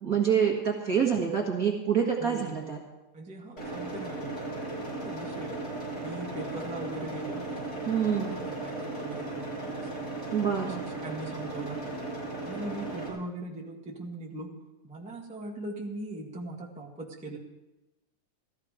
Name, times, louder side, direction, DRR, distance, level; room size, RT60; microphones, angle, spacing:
voice 1, 0.0-2.8 7.9-8.4 10.3-10.8, right 7 dB, 35° right, -1 dB, 1.7 m, -26 dB
voice 2, 2.2-2.6 3.1-5.6 6.0-10.7 11.0-11.8 12.4-14.5 14.8-17.4, right 2 dB, 5° right, -2 dB, 1.1 m, -40 dB
sound 1, 3.6-13.1, right 2 dB, 30° left, 5.9 m, -36 dB
15.5 x 14.5 x 5.0 m, 1.0 s
omnidirectional pair, 3.4 m